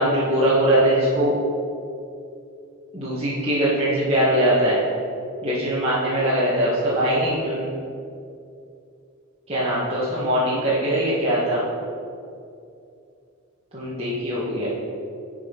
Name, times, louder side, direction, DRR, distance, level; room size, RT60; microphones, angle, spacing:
voice 1, 0.0-1.4 2.9-4.8 5.4-7.7 9.5-11.6 13.7-14.7, right 1 dB, 30° right, -10 dB, 1.8 m, -21 dB
11.0 x 5.2 x 5.5 m, 2.5 s
head